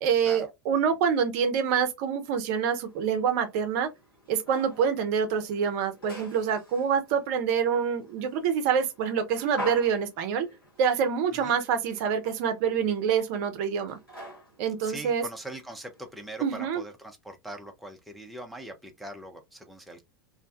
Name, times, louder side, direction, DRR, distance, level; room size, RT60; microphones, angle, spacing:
voice 1, 0.0-3.9 4.3-10.5 10.8-14.0 14.6-15.2 16.4-16.8, right 7 dB, 45° right, 0.6 m, -26 dB
sound 1, 2.5-16.3, equal, 80° left, 1.3 m, -46 dB
voice 2, 14.8-20.0, right 1 dB, ahead, 0.5 m, -42 dB
2.5 x 2.2 x 2.4 m
figure-of-eight pair, 85°, 12 cm